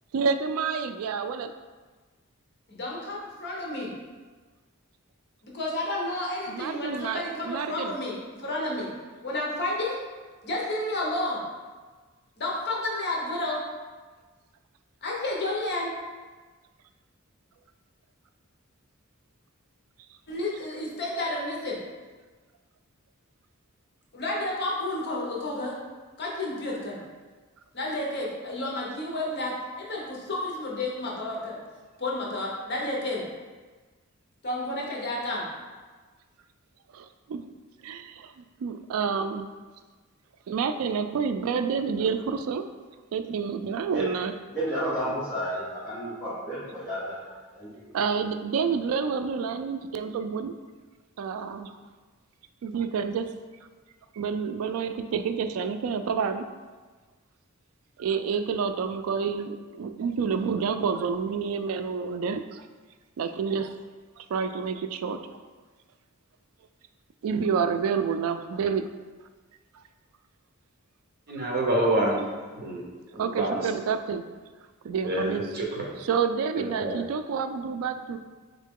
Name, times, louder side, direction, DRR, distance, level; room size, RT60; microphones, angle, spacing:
voice 1, 0.1-1.5 6.5-7.9 36.9-37.5 37.8-39.5 40.5-42.7 43.1-44.3 47.9-50.5 51.2-51.8 52.6-53.3 54.1-56.5 58.0-62.6 63.2-63.8 64.2-65.2 67.2-68.9 73.2-74.2 74.8-75.4 76.1-78.2, right 6 dB, 70° right, 10 dB, 0.3 m, -29 dB
voice 2, 2.7-3.9 5.4-8.9 9.2-10.0 10.4-11.4 12.4-13.6 15.0-15.9 20.3-21.8 24.1-25.8 26.2-27.0 27.7-31.6 32.0-33.2 34.4-35.5, left 1 dB, 50° left, -3 dB, 0.9 m, -31 dB
voice 3, 44.5-47.8, equal, 10° left, -16 dB, 1.4 m, -32 dB
voice 4, 71.3-72.2 72.5-72.9 73.1-73.5 75.0-75.9 76.6-77.0, right 1 dB, 45° right, -1 dB, 0.8 m, -27 dB
3.7 x 3.7 x 3.6 m, 1.3 s
head